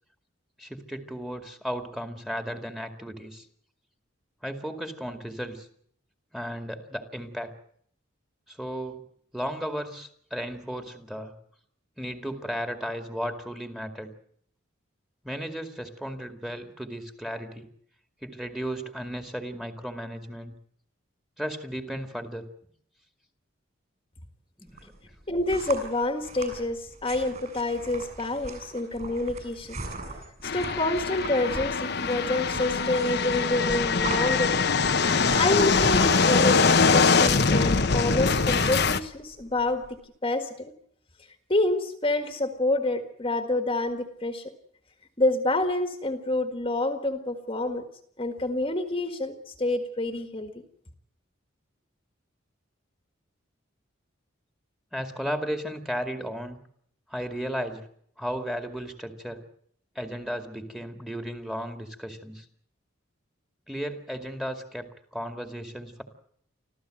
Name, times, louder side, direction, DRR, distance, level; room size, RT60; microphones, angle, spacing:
voice 1, 0.6-3.5 4.4-5.7 6.3-7.5 8.5-9.0 9.3-11.3 12.0-14.1 15.2-17.7 18.2-20.5 21.4-22.5 24.6-25.1 54.9-56.6 57.1-57.9 58.2-59.4 59.9-62.5 63.7-66.0, equal, ahead, 6 dB, 2.2 m, -35 dB
sound 1, 24.7-40.0, right 2 dB, 40° right, 7.0 m, -40 dB
voice 2, 25.3-29.8 30.4-34.6 35.3-40.7 41.5-44.5 45.2-47.9 48.2-50.5, left 2 dB, 25° left, 6 dB, 1.8 m, -27 dB
sound 2, 30.4-39.0, left 4 dB, 55° left, 1.1 m, -23 dB
25.5 x 15.0 x 7.8 m, 0.65 s
head